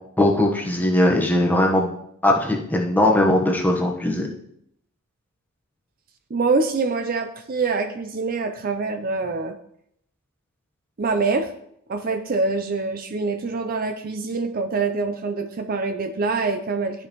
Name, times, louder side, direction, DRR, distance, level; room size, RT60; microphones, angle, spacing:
voice 1, 0.2-2.0 2.2-4.3, left 1 dB, 10° left, 0 dB, 1.1 m, -19 dB
voice 2, 6.3-9.6 11.0-11.5 11.9-17.1, right 4 dB, 40° right, 7 dB, 0.5 m, -25 dB
12.0 x 5.2 x 3.0 m, 0.72 s
head